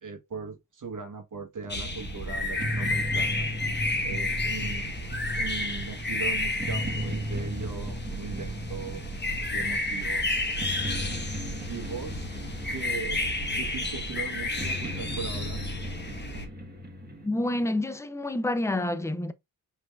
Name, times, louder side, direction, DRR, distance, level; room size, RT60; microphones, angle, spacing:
voice 1, 0.0-3.5 4.0-4.9 5.3-9.0 9.5-10.3 11.7-12.3 12.7-15.6, right 5 dB, 45° right, 1.2 m, -39 dB
sound 1, 1.7-16.5, left 2 dB, 25° left, 1.0 m, -31 dB
sound 2, 1.7-17.3, equal, 20° right, 1.4 m, -37 dB
voice 2, 17.2-19.3, left 1 dB, 5° left, 0.3 m, -28 dB
5.0 x 3.4 x 2.3 m
cardioid pair, 105°, 44 cm